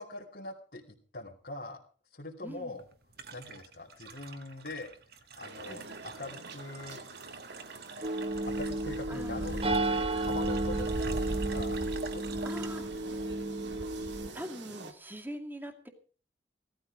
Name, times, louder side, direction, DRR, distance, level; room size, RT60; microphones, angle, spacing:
voice 1, 0.0-1.8 2.1-2.8 3.3-4.9 5.4-7.0 8.5-9.6 9.9-11.8 12.1-12.2 12.5-13.4, left 2 dB, 55° left, -3 dB, 2.8 m, -43 dB
voice 2, 2.4-2.8 5.6-5.8 9.1-9.5 12.4-12.9 14.0-15.9, equal, 10° right, 4 dB, 2.2 m, -43 dB
sound 1, 2.5-14.2, right 4 dB, 60° right, 1.9 m, -47 dB
sound 2, 5.4-14.9, right 3 dB, 80° right, 2.1 m, -48 dB
sound 3, 8.0-14.3, right 2 dB, 30° right, 0.8 m, -32 dB
17.0 x 13.5 x 4.8 m, 0.40 s
head